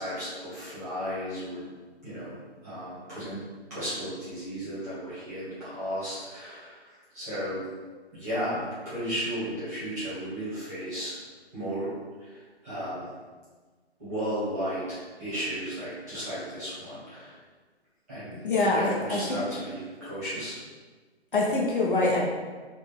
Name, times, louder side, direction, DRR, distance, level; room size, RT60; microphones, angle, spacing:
voice 1, 0.0-1.7 2.0-2.4 2.6-3.4 3.7-6.8 7.1-7.7 8.1-11.2 11.5-11.9 12.2-13.1 14.0-17.4 18.1-18.4 18.7-20.6, equal, 15° right, -12 dB, 1.2 m, -34 dB
voice 2, 18.4-19.4 21.3-22.2, left 2 dB, 50° left, -4 dB, 0.8 m, -24 dB
4.4 x 2.5 x 3.3 m, 1.4 s
hypercardioid pair, 175°, 33 cm